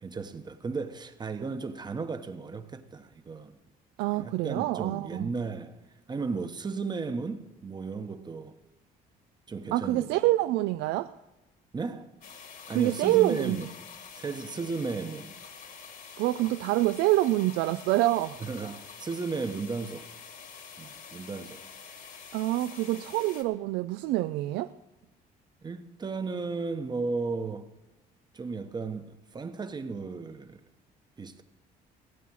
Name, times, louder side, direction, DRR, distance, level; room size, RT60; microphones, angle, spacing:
voice 1, 0.0-3.6 4.1-5.7 6.1-8.6 9.5-10.2 11.7-12.1 12.7-13.7 14.1-15.3 18.4-20.1 20.8-21.7 25.6-27.7 28.3-30.6 31.2-31.4, right 4 dB, 25° right, 1.0 m, -35 dB
voice 2, 4.0-5.3 9.7-11.1 12.7-13.6 16.2-18.4 22.3-24.7, right 16 dB, 90° right, 0.4 m, -26 dB
sound 1, 12.2-23.4, left 6 dB, 55° left, 1.8 m, -47 dB
17.0 x 8.5 x 6.2 m
cardioid pair, 110°, 17 cm